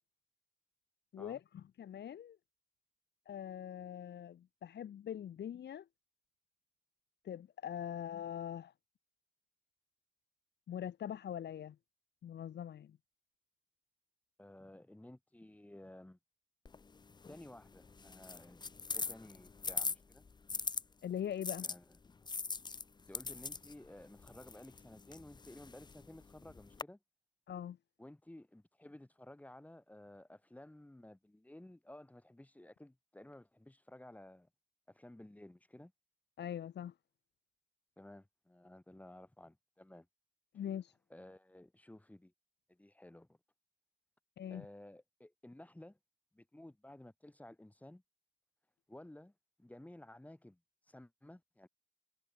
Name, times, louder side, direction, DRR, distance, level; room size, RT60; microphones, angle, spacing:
voice 1, 1.1-2.4 3.3-5.9 7.2-8.7 10.7-11.8 12.2-13.0 21.0-21.7 27.5-27.8 36.4-36.9 40.5-40.9 44.4-44.6, left 9 dB, 90° left, 2.6 m, -42 dB
voice 2, 14.4-16.2 17.3-20.3 21.6-22.0 23.1-27.0 28.0-34.5 34.9-35.9 38.0-40.1 41.1-42.3 42.7-43.4 44.5-46.0 46.3-48.0 48.9-49.3 49.6-50.6 50.9-51.7, left 1 dB, 10° left, 3.9 m, -55 dB
sound 1, 16.7-20.8 21.4-26.8, left 4 dB, 25° left, 0.6 m, -42 dB
wide cardioid pair, 135°, 17 cm